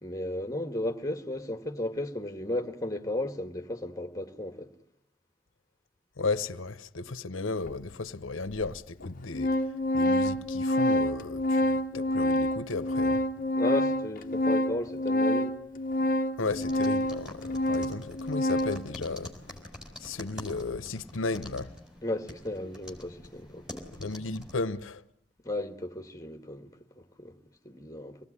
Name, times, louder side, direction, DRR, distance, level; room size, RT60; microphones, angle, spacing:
voice 1, 0.0-4.7 13.6-15.6 22.0-23.8 25.4-26.7 26.9-27.4 27.6-28.2, left 1 dB, 15° left, 1.7 m, -34 dB
voice 2, 6.2-9.6 9.9-13.2 16.4-19.3 20.0-21.7 24.0-25.0, left 3 dB, 90° left, 1.0 m, -34 dB
Organ, 7.7-7.8 8.6-8.7 9.0-18.9, left 1 dB, 45° left, 1.0 m, -27 dB
sound 1, 16.5-24.6, left 1 dB, 5° right, 4.4 m, -46 dB
26.0 x 19.0 x 9.8 m
head